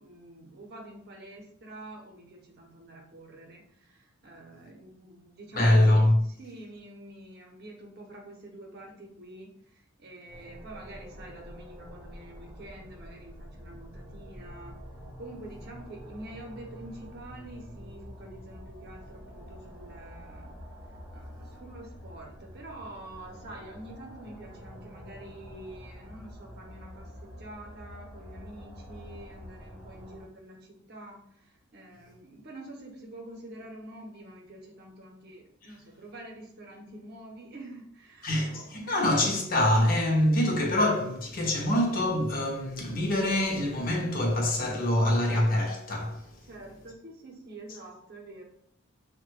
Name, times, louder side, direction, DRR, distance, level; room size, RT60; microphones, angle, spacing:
voice 1, 0.0-14.7 15.2-20.5 21.1-39.1 46.5-48.4, right 1 dB, 50° right, 0.7 m, -47 dB
voice 2, 5.5-6.2 38.2-46.3, left 1 dB, 45° left, 0.6 m, -25 dB
sound 1, 10.3-30.2, equal, 10° right, 0.6 m, -47 dB
3.1 x 2.1 x 3.0 m
head